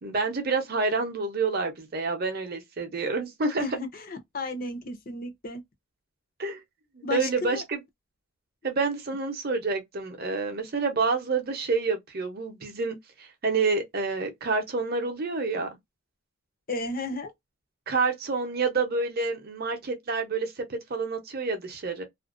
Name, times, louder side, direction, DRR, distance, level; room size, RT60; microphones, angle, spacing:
voice 1, 0.0-3.7 6.4-6.6 6.9-7.8 8.6-15.7 17.9-22.0, right 4 dB, 45° right, 0.6 m, -28 dB
voice 2, 3.6-5.6 7.0-7.6 16.7-17.3, left 2 dB, 45° left, 0.6 m, -34 dB
2.4 x 2.1 x 2.4 m
head